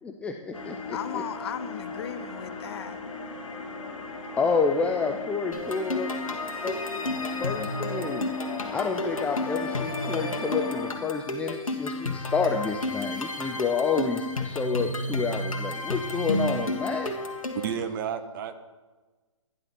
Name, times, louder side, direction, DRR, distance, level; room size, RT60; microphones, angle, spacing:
voice 1, 0.0-1.2 4.4-6.1 6.6-6.8 7.4-8.3 8.7-17.1, left 5 dB, 5° left, 4 dB, 0.5 m, -29 dB
sound 1, 0.5-10.9, left 4 dB, 70° left, 2.3 m, -37 dB
voice 2, 0.9-3.0, left 9 dB, 50° left, 12 dB, 0.9 m, -36 dB
sound 2, 5.5-17.8, left 1 dB, 90° left, 2.0 m, -32 dB
voice 3, 17.5-18.6, right 7 dB, 40° right, 9 dB, 1.1 m, -31 dB
12.5 x 11.0 x 4.5 m, 1.3 s
hypercardioid pair, 140°, 17 cm